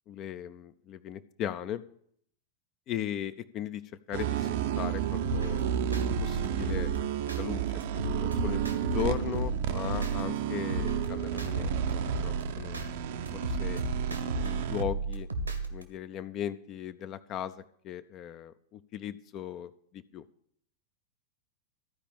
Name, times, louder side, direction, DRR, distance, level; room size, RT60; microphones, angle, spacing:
voice 1, 0.1-1.8 2.9-3.8 4.1-6.9 7.3-12.8 13.3-13.8 14.1-15.3 15.7-20.2, left 10 dB, 35° left, 12 dB, 0.5 m, -38 dB
sound 1, 4.1-14.8, right 9 dB, 55° right, 0.7 m, -32 dB
sound 2, 5.2-7.4 7.8-10.4 10.7-12.9 13.3-15.8, right 3 dB, 80° right, 1.4 m, -33 dB
14.0 x 5.0 x 8.7 m, 0.66 s
figure-of-eight pair, 90°, 0 cm